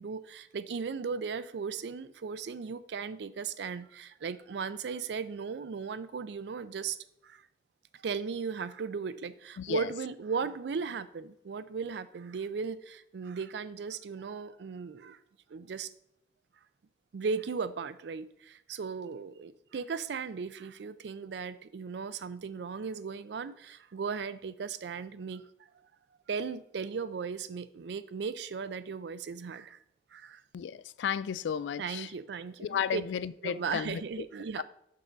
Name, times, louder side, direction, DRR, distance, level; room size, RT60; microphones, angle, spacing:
voice 1, 0.0-7.4 7.9-15.2 15.5-15.9 17.1-25.5 26.3-29.8 30.1-30.4 31.8-33.0 33.4-34.6, right 5 dB, 75° right, 0.4 m, -37 dB
voice 2, 9.6-9.9 30.5-32.1 32.6-34.2 34.6-34.7, left 8 dB, 85° left, 0.3 m, -33 dB
6.2 x 5.5 x 3.9 m
head